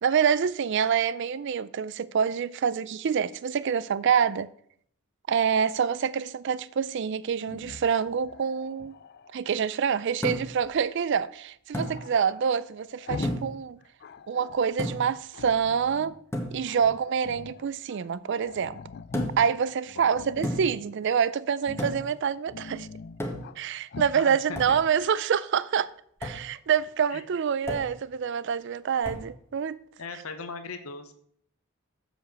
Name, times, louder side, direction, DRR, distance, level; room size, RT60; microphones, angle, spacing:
voice 1, 0.0-4.5 5.3-9.0 9.3-13.8 14.3-16.2 16.5-18.8 19.4-22.9 23.6-25.9 26.2-29.8, right 7 dB, 60° right, 0.4 m, -26 dB
Growling, 7.4-9.4 11.8-13.5 13.8-14.7 15.3-16.2 16.7-17.7 18.0-18.1 18.3-19.6 20.1-20.9 21.6-22.0 22.4-23.6 23.9-24.2, left 4 dB, 50° left, 0.4 m, -43 dB
sound 1, 10.2-10.7 11.7-12.0 13.2-13.6 14.8-15.2 16.3-16.6 19.1-19.5 20.4-20.8 21.8-22.1 23.2-23.6 24.6-24.8 26.2-26.5 27.7-28.0 29.0-29.3, equal, 10° left, 1.5 m, -32 dB
voice 2, 20.0-20.3 24.1-24.6 27.1-27.2 30.0-31.1, left 4 dB, 90° left, 1.0 m, -39 dB
7.6 x 5.1 x 7.4 m
head